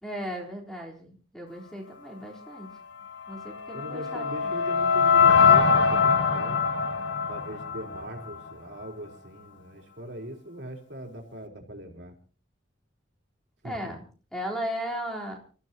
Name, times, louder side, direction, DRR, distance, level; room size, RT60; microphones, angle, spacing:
voice 1, 0.0-2.7 3.3-4.6 13.6-14.0 14.3-15.4, equal, 5° left, -1 dB, 3.7 m, -36 dB
sound 1, 3.3-8.5, left 6 dB, 70° left, 1.5 m, -22 dB
voice 2, 3.7-6.6 7.3-12.2 13.6-14.0, right 1 dB, 60° right, 2 dB, 4.1 m, -40 dB
29.0 x 15.0 x 2.8 m, 0.38 s
head